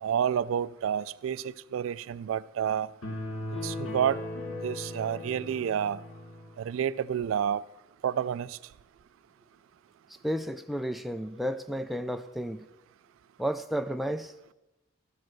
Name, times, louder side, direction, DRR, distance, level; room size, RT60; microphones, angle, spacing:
voice 1, 0.0-2.9 3.6-4.2 4.6-6.0 6.6-7.6 8.0-8.6, right 8 dB, 85° right, 0.3 m, -29 dB
sound 1, 3.0-6.6, left 1 dB, 90° left, 1.7 m, -37 dB
voice 2, 10.2-12.6 13.4-14.3, equal, ahead, 0.3 m, -32 dB
13.0 x 5.0 x 6.1 m
head